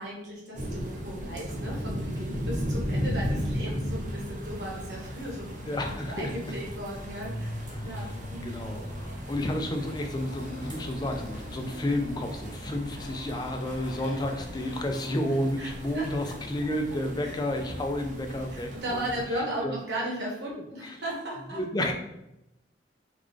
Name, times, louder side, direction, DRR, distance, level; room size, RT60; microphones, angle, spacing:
voice 1, 0.0-8.6 15.6-15.7 15.9-16.0 17.2-17.3 18.5-21.6, right 1 dB, 70° right, -3 dB, 1.2 m, -36 dB
sound 1, 0.5-19.2, equal, 45° right, 0.7 m, -36 dB
Motorcycle, 4.6-17.3, equal, 85° left, 0.6 m, -45 dB
voice 2, 5.7-6.5 7.7-8.0 8.4-19.1 19.6-19.7 20.8-21.0 21.5-21.9, left 1 dB, 25° left, 4 dB, 0.4 m, -31 dB
3.7 x 2.4 x 3.2 m, 0.85 s
head